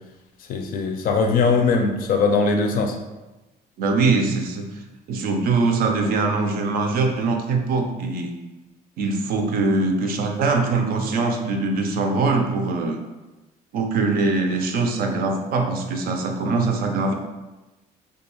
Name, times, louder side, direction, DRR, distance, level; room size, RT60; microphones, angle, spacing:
voice 1, 0.5-3.0, left 4 dB, 55° left, 4 dB, 0.4 m, -20 dB
voice 2, 3.8-4.7 5.1-8.3 9.0-13.0 13.7-17.1, right 3 dB, 60° right, 3 dB, 0.4 m, -22 dB
2.3 x 2.2 x 2.9 m, 1.1 s
cardioid pair, 110°, 17 cm